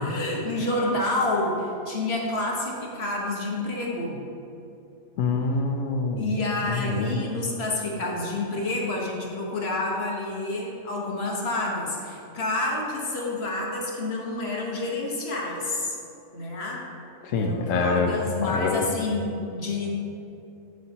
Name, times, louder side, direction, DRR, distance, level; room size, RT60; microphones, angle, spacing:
voice 1, 0.0-4.2 6.2-16.0 16.3-16.9 17.3-19.9, left 2 dB, 45° left, -2 dB, 1.2 m, -29 dB
voice 2, 5.2-6.3 6.7-7.2 17.2-18.1 18.4-18.8, left 4 dB, 65° left, 4 dB, 0.9 m, -25 dB
7.8 x 7.5 x 2.8 m, 2.8 s
omnidirectional pair, 1.6 m